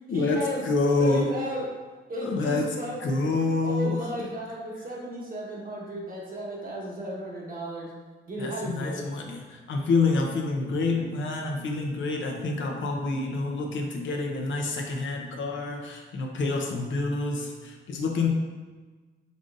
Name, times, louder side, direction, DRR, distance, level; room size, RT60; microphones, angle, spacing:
voice 1, 0.1-0.7 1.0-1.7 2.1-3.3 3.6-7.9 8.3-9.0, equal, 45° right, -4 dB, 1.2 m, -34 dB
voice 2, 0.6-1.3 2.2-2.7 3.0-4.2 8.4-18.3, left 3 dB, 70° left, 1 dB, 0.7 m, -27 dB
5.2 x 3.8 x 2.5 m, 1.3 s
wide cardioid pair, 125°, 20 cm